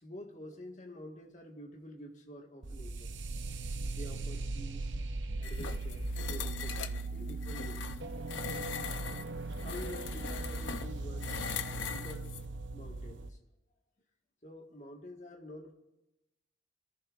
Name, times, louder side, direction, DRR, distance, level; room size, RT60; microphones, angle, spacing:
voice 1, 0.0-3.1 3.9-4.9 5.4-7.9 9.6-11.3 11.6-12.3 12.7-13.4 14.4-15.7, left 1 dB, 40° left, 1 dB, 1.6 m, -48 dB
sound 1, 2.6-13.3, right 2 dB, 75° right, 0.7 m, -38 dB
sound 2, 5.4-12.5, left 7 dB, 80° left, 0.6 m, -41 dB
24.0 x 14.0 x 2.5 m, 0.97 s
head